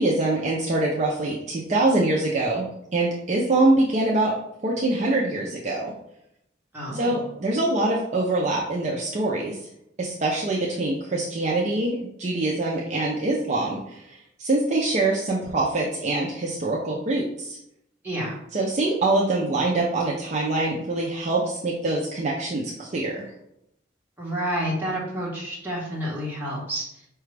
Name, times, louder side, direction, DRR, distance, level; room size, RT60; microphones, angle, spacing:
voice 1, 0.0-4.3 4.6-5.9 6.9-9.6 10.0-14.0 14.4-17.6 18.5-23.2, right 2 dB, 35° right, -3 dB, 0.4 m, -24 dB
voice 2, 6.7-7.2 18.0-18.4 24.2-27.1, equal, 10° right, -5 dB, 1.0 m, -29 dB
4.9 x 2.3 x 3.2 m, 0.79 s
head